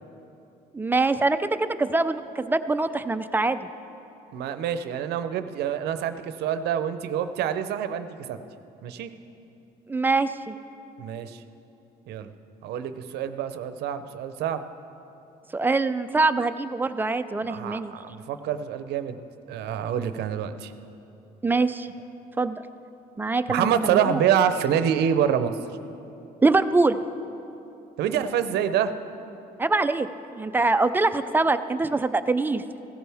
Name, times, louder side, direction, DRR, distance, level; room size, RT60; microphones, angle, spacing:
voice 1, 0.7-3.6 9.9-10.6 15.5-17.9 21.4-21.9 22.4-22.6 23.2-24.2 26.4-27.0 29.6-30.1 30.4-32.6, right 3 dB, 10° right, 10 dB, 0.4 m, -24 dB
voice 2, 4.3-8.4 8.8-9.1 11.0-11.4 12.1-12.3 12.6-14.6 17.4-19.2 19.5-20.7 23.5-25.5 28.0-28.9, right 9 dB, 75° right, 11 dB, 0.7 m, -26 dB
16.5 x 14.0 x 3.5 m, 2.9 s
cardioid pair, 110°, 17 cm